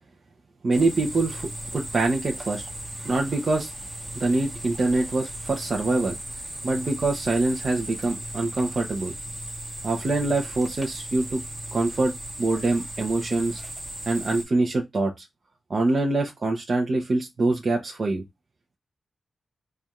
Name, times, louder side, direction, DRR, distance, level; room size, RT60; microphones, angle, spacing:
voice 1, 0.6-2.7 3.0-3.7 4.1-6.1 6.6-9.1 9.8-11.4 11.7-12.1 12.4-13.6 14.1-15.2 15.7-18.2, right 2 dB, 45° right, 0.7 m, -24 dB
sound 1, 0.7-14.4, right 1 dB, 25° right, 1.0 m, -37 dB
3.3 x 2.4 x 4.1 m
wide cardioid pair, 125°, 0 cm